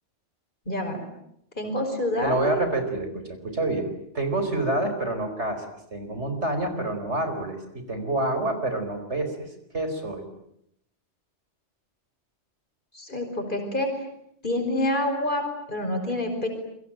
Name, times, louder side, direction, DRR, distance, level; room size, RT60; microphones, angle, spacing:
voice 1, 0.7-1.0 1.6-2.6 12.9-13.9 14.4-16.5, left 1 dB, 45° left, 4 dB, 5.5 m, -27 dB
voice 2, 2.2-3.9 4.1-5.6 5.9-9.5 9.7-10.3, right 2 dB, 80° right, 8 dB, 4.9 m, -27 dB
28.0 x 23.0 x 9.1 m, 0.75 s
omnidirectional pair, 1.2 m